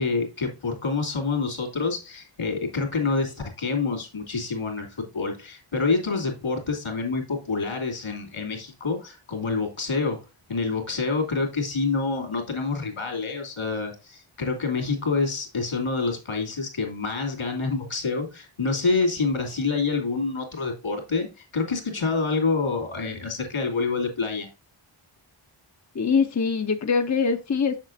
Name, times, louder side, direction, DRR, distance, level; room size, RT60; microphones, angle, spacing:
voice 1, 0.0-10.2 10.5-24.5, left 4 dB, 80° left, 2.8 m, -27 dB
voice 2, 25.9-27.8, left 5 dB, 35° left, 0.6 m, -23 dB
7.3 x 6.8 x 2.6 m
wide cardioid pair, 75°, 49 cm